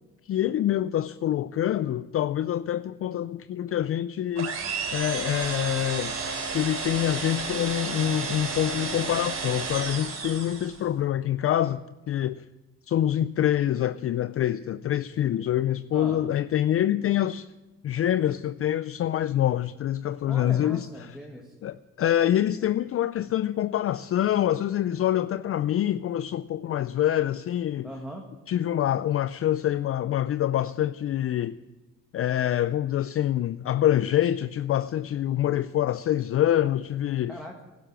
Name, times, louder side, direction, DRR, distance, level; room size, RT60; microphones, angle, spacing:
voice 1, 0.3-4.6 4.9-6.2 6.5-12.4 12.9-17.5 17.8-21.2 21.6-27.9 28.5-31.6 32.1-37.4, left 11 dB, 50° left, 0.4 m, -26 dB
sound 1, 4.4-10.9, right 5 dB, 60° right, 3.3 m, -32 dB
voice 2, 20.3-21.5 27.8-28.2 37.3-37.6, equal, ahead, 1.8 m, -39 dB
12.0 x 11.5 x 7.4 m
cardioid pair, 90°, 30 cm